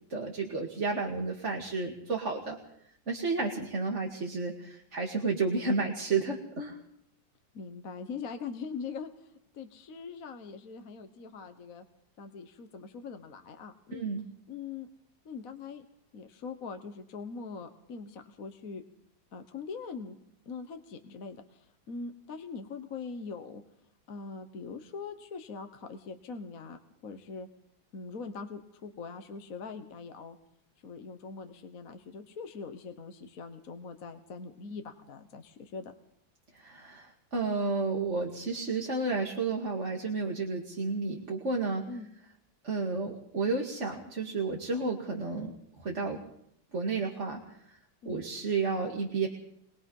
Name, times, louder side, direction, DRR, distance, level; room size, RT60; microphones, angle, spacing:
voice 1, 0.1-2.6 3.1-6.8 13.9-14.2 36.5-41.8 42.6-46.2 46.7-47.6 48.1-49.3, right 4 dB, 40° right, 0 dB, 2.4 m, -31 dB
voice 2, 7.5-11.8 12.2-14.1 14.5-14.9 15.2-15.8 16.1-18.8 19.3-20.2 20.4-23.6 24.1-27.5 27.9-30.4 30.8-35.9 41.9-42.1 48.0-48.2, left 5 dB, 50° left, 7 dB, 1.6 m, -42 dB
23.0 x 21.5 x 5.5 m, 0.72 s
omnidirectional pair, 2.0 m